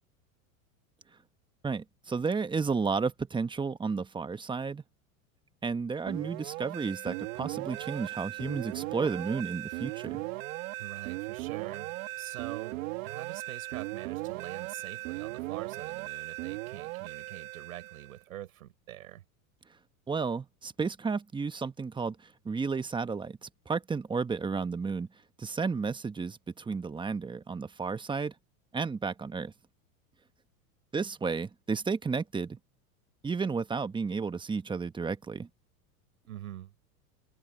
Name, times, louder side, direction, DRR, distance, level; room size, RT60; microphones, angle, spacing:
voice 1, 1.6-4.8 5.6-10.2 20.1-25.1 25.4-28.3 28.7-29.5 30.9-32.6 33.2-35.5, right 5 dB, 10° right, 1.1 m, -32 dB
sound 1, 6.1-18.2, right 22 dB, 70° right, 2.3 m, -38 dB
voice 2, 10.8-12.8 13.0-19.2 36.3-36.7, right 13 dB, 90° right, 6.2 m, -45 dB
supercardioid pair, 120°, 41 cm